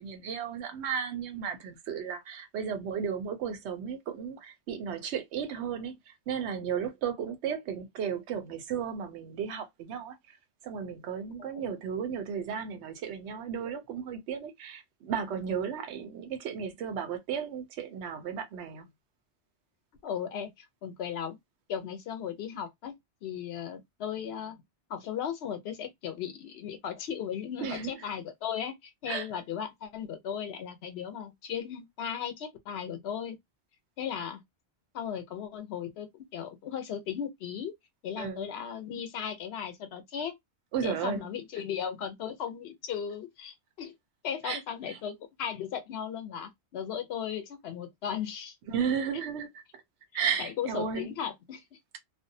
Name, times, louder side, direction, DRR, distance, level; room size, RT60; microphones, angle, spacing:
voice 1, 0.0-10.4 10.6-18.9 27.6-28.0 29.1-29.3 38.2-38.5 40.7-41.3 44.4-44.6 44.9-45.0 48.7-49.8 50.1-51.1, right 7 dB, 80° right, 0.9 m, -34 dB
voice 2, 11.4-11.8 20.0-21.4 21.7-22.9 23.2-24.6 24.9-33.4 34.0-34.4 34.9-37.7 38.0-40.3 40.8-43.9 44.2-48.6 50.4-51.6, left 8 dB, 70° left, 0.9 m, -36 dB
2.5 x 2.1 x 2.6 m
omnidirectional pair, 1.1 m